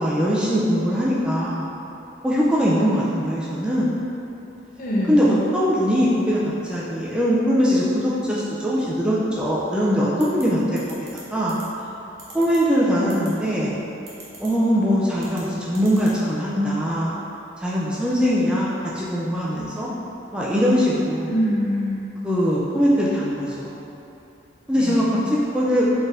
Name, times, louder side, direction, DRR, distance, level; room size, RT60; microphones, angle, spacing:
voice 1, 0.0-1.7 2.2-4.0 5.1-10.6 11.3-11.6 12.3-13.8 14.4-17.2 17.6-19.9 20.3-21.3 22.2-23.8 24.7-25.8, equal, 5° right, -7 dB, 0.3 m, -21 dB
voice 2, 2.8-3.3 4.8-5.3 21.3-22.0 24.7-25.1, equal, 45° left, -4 dB, 0.6 m, -25 dB
sound 1, 10.2-10.4 10.8-11.2 11.5-11.6 12.2-12.6 13.1-13.3 14.1-14.5 15.2-15.4 15.7-16.1, right 4 dB, 55° right, 0.8 m, -41 dB
4.2 x 3.3 x 2.5 m, 2.9 s
head